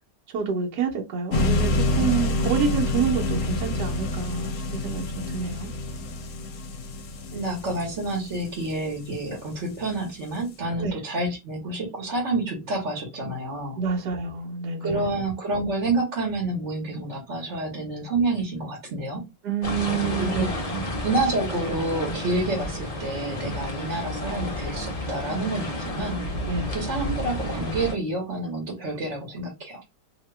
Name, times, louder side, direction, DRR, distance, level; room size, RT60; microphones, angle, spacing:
voice 1, 0.3-5.7 10.8-11.0 13.8-15.1 19.4-20.5 20.7-20.9 26.5-26.7, right 6 dB, 70° right, 1.3 m, -28 dB
sound 1, 1.3-9.4, left 2 dB, 65° left, 1.0 m, -27 dB
voice 2, 7.3-13.8 14.8-19.3 20.2-20.5 21.0-26.2 26.7-29.8, right 2 dB, 45° right, 1.2 m, -28 dB
sound 2, 19.6-27.9, left 1 dB, 40° left, 0.5 m, -31 dB
2.8 x 2.8 x 3.2 m
omnidirectional pair, 1.9 m